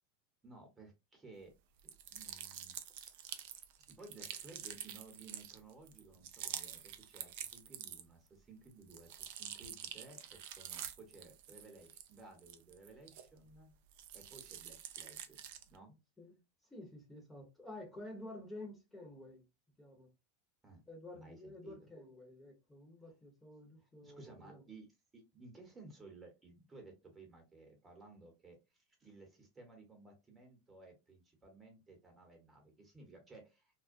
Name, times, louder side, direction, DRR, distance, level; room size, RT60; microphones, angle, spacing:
voice 1, 0.4-1.5 1.8-2.8 3.2-3.5 3.9-13.8 14.1-15.9 20.6-20.8 21.1-21.9 23.8-24.9 25.1-33.7, right 3 dB, 20° right, 1.1 m, -57 dB
sound 1, 1.8-8.3 8.6-13.5 13.9-15.8, right 10 dB, 65° right, 0.3 m, -47 dB
voice 2, 16.2-19.4 19.8-20.1 20.9-24.6, left 1 dB, 10° left, 0.9 m, -51 dB
2.3 x 2.1 x 2.5 m
hypercardioid pair, 110°, 0 cm